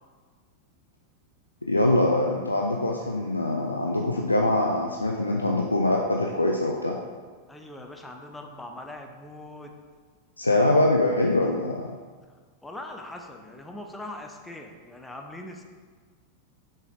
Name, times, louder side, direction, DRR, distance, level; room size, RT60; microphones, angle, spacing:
voice 1, 1.7-7.0 10.4-11.9, left 1 dB, 85° left, 1 dB, 0.6 m, -23 dB
voice 2, 7.5-9.7 12.6-15.6, left 1 dB, 5° left, 3 dB, 0.9 m, -41 dB
6.9 x 5.7 x 4.7 m, 1.5 s
figure-of-eight pair, 90°, 0 cm